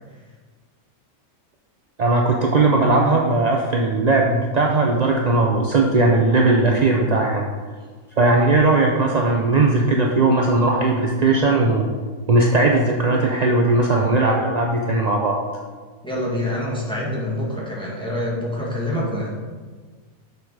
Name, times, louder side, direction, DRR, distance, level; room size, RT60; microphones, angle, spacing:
voice 1, 2.0-7.5 8.2-11.9 12.3-15.4, right 2 dB, 50° right, 0 dB, 0.5 m, -18 dB
voice 2, 16.0-19.3, left 1 dB, 5° left, -5 dB, 1.9 m, -26 dB
6.8 x 6.7 x 4.8 m, 1.5 s
omnidirectional pair, 1.6 m